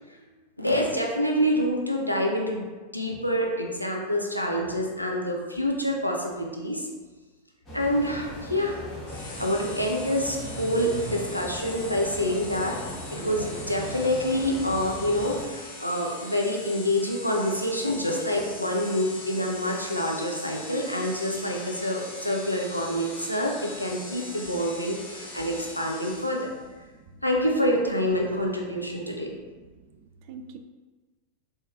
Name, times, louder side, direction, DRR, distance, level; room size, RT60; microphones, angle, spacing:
voice 1, 0.6-2.6 2.9-6.9 7.7-8.8 9.2-12.8 13.1-26.5 27.2-29.3, equal, 90° left, -1 dB, 0.5 m, -27 dB
sound 1, 7.7-15.5, equal, 20° left, 1.1 m, -38 dB
sound 2, 9.1-26.6, left 2 dB, 45° left, 1.0 m, -41 dB
voice 2, 26.8-27.2 28.9-29.3 29.5-29.9 30.3-30.6, right 5 dB, 45° right, 6 dB, 0.3 m, -46 dB
4.4 x 2.8 x 2.4 m, 1.3 s
figure-of-eight pair, 90°, 0 cm